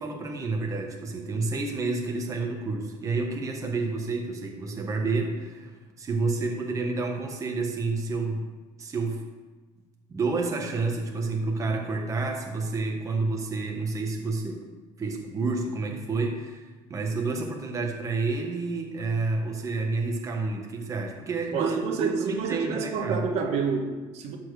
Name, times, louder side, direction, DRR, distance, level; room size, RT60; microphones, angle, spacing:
voice 1, 0.0-8.4 8.8-9.2 10.1-14.6 15.0-23.2, right 3 dB, 25° right, 2 dB, 1.3 m, -29 dB
voice 2, 21.5-24.4, right 5 dB, 65° right, 3 dB, 1.5 m, -29 dB
13.0 x 4.6 x 6.5 m, 1.3 s
cardioid pair, 135°, 12 cm